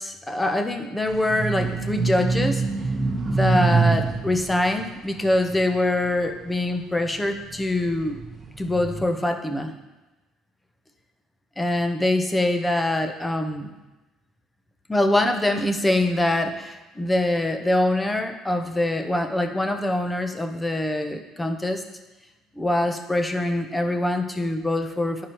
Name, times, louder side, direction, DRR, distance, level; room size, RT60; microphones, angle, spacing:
voice 1, 0.0-2.6 3.3-8.2 8.6-9.7 11.6-13.7 14.9-21.8 22.6-25.3, left 1 dB, 15° left, 6 dB, 0.8 m, -24 dB
sound 1, 1.1-6.6 7.2-9.0, right 4 dB, 30° right, 1.2 m, -26 dB
10.5 x 4.7 x 3.0 m, 1.1 s
supercardioid pair, 85°, 0 cm